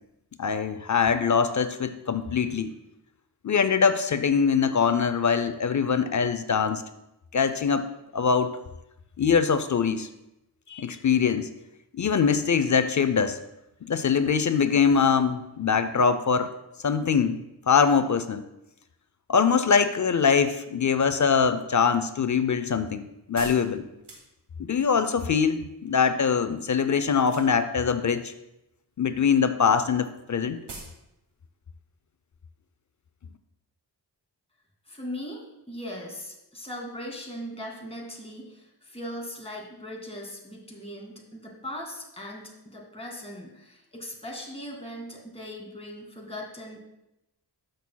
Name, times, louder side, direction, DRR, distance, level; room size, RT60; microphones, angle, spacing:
voice 1, 0.4-2.7 3.4-6.8 7.3-8.5 9.2-10.1 10.7-11.5 11.9-13.4 13.8-16.5 16.8-17.4 17.7-18.4 19.3-23.8 24.6-28.3 29.0-30.6, left 6 dB, 45° left, 11 dB, 0.5 m, -23 dB
sound 1, 22.3-24.8 27.2-27.8 28.1-28.7 29.0-29.1 29.4-29.5 29.7-29.8 30.1-30.2 30.7-31.0 31.3-31.4, right 2 dB, 75° right, 2.2 m, -44 dB
voice 2, 34.9-46.8, equal, 15° left, -1 dB, 2.1 m, -39 dB
12.5 x 6.3 x 2.2 m, 0.88 s
wide cardioid pair, 75°, 42 cm